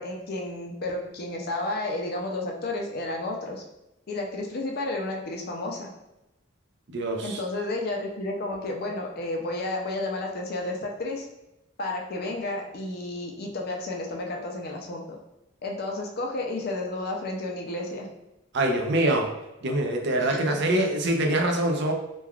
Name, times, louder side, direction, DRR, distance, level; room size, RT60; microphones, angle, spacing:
voice 1, 0.0-3.6 4.1-5.9 7.2-11.3 11.8-15.2 15.6-18.1 20.2-20.5, left 2 dB, 50° left, 1 dB, 0.5 m, -32 dB
voice 2, 6.9-7.4 18.5-19.3 19.6-21.9, right 1 dB, 60° right, 2 dB, 0.5 m, -24 dB
3.2 x 2.3 x 2.3 m, 0.91 s
head